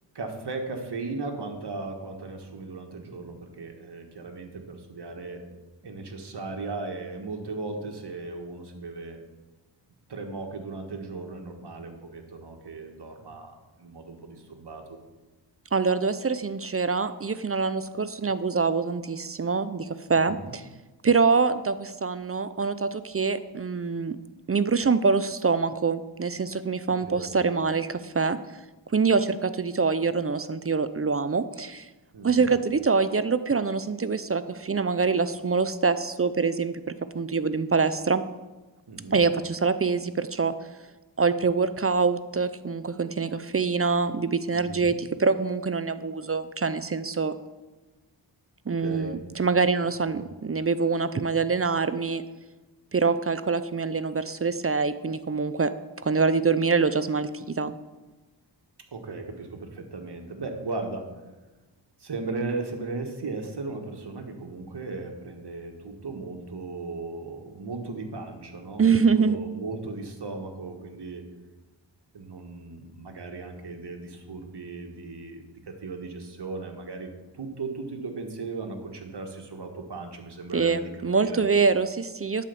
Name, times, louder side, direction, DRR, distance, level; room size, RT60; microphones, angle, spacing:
voice 1, 0.1-5.4 5.8-9.2 10.1-15.0 20.2-20.5 26.9-27.3 32.1-32.5 38.9-39.2 44.5-44.9 48.6-49.2 50.0-50.2 58.9-61.1 62.0-71.2 72.1-80.9 81.1-81.4, right 3 dB, 60° right, 4 dB, 1.7 m, -37 dB
voice 2, 15.7-20.6 21.0-24.2 24.5-28.4 28.9-31.9 32.2-36.8 37.1-38.2 39.1-40.5 41.2-47.3 48.7-52.2 52.9-55.7 56.0-57.7 68.8-69.4 80.5-82.4, right 4 dB, 30° right, 13 dB, 0.5 m, -25 dB
11.5 x 5.1 x 7.0 m, 1.2 s
cardioid pair, 60°, 46 cm